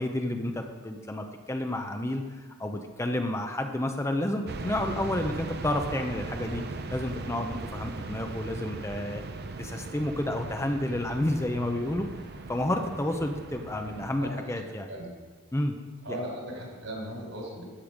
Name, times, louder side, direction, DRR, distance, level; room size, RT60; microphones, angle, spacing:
voice 1, 0.0-2.2 2.6-6.6 6.9-9.2 9.6-12.0 12.5-14.9 15.5-15.7 16.1-16.2, left 1 dB, 15° left, 5 dB, 0.6 m, -30 dB
sound 1, 4.5-14.2, right 3 dB, 50° right, 0.7 m, -39 dB
voice 2, 14.2-15.2 16.0-17.7, right 1 dB, 70° right, -1 dB, 4.2 m, -38 dB
13.0 x 8.5 x 5.1 m, 1.4 s
head